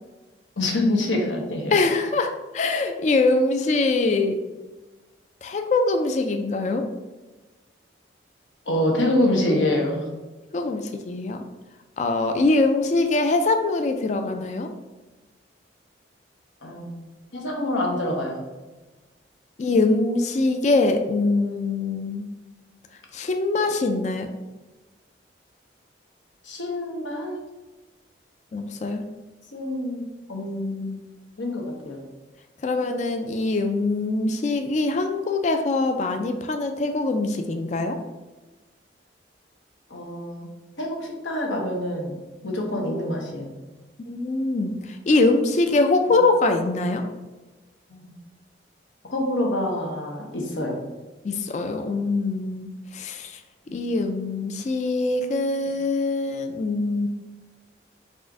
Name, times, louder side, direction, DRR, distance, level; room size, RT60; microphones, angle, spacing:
voice 1, 0.6-1.7 8.7-10.1 16.6-17.0 17.3-18.4 26.4-27.4 29.5-31.0 31.4-32.0 39.9-40.5 40.8-42.2 42.4-43.5 47.9-48.1 49.0-50.8 53.7-53.8, left 1 dB, 90° left, 0 dB, 1.0 m, -26 dB
voice 2, 1.7-4.4 5.4-6.8 10.5-11.4 12.0-14.7 19.6-22.3 23.1-24.3 28.5-29.0 32.6-38.0 44.1-47.0 51.2-53.4 53.7-57.1, left 3 dB, 40° left, 5 dB, 0.3 m, -23 dB
4.2 x 2.5 x 4.6 m, 1.2 s
head